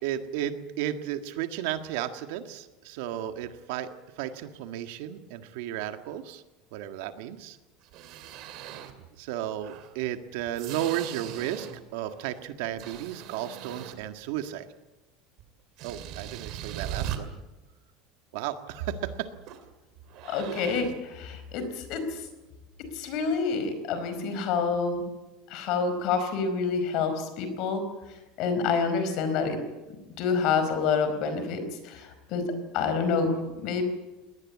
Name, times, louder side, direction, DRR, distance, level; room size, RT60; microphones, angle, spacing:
voice 1, 0.0-3.9 4.2-6.4 6.7-7.6 9.2-14.7 15.8-17.3 18.3-19.3, right 11 dB, 70° right, 8 dB, 1.8 m, -33 dB
sound 1, 7.8-9.1 9.6-11.9 12.3-14.2 15.4-15.5 15.8-17.2 19.5-19.7 20.1-21.0, right 11 dB, 45° right, 2.4 m, -39 dB
voice 2, 20.3-22.0 22.9-25.0 25.5-27.8 28.4-29.6 30.2-32.4 32.7-33.3 33.6-33.8, left 5 dB, 45° left, 9 dB, 4.7 m, -27 dB
22.0 x 18.5 x 8.7 m, 1.1 s
cardioid pair, 175°, 0 cm